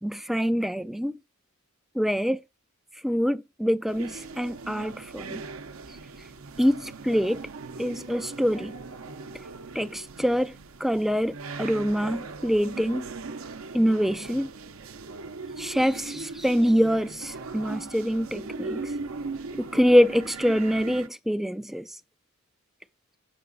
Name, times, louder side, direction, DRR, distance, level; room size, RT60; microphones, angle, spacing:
voice 1, 0.0-1.2 2.0-2.4 3.0-5.4 6.6-7.4 7.8-8.7 9.7-10.5 10.8-13.1 13.7-14.5 15.6-18.9 19.6-21.9, equal, ahead, 0.3 m, -25 dB
sound 1, 3.9-21.1, right 3 dB, 70° right, 0.7 m, -39 dB
8.0 x 5.9 x 3.9 m
head